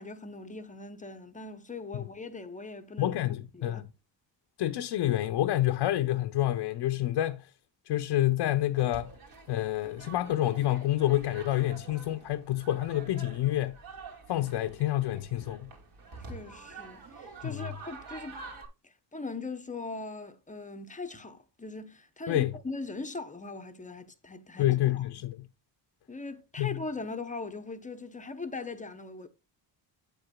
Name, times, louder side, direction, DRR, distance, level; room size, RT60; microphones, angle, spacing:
voice 1, 0.0-3.8 16.2-18.4 18.8-25.0 26.1-29.3, left 3 dB, 15° left, 0.7 m, -40 dB
voice 2, 3.0-3.8 4.6-7.4 7.9-9.1 9.5-13.8 14.3-15.7 17.4-17.7 22.3-22.6 24.6-25.5 26.6-26.8, left 14 dB, 65° left, 0.7 m, -28 dB
sound 1, 8.7-18.7, right 4 dB, 50° right, 2.6 m, -48 dB
9.2 x 7.9 x 2.2 m
cardioid pair, 160°, 44 cm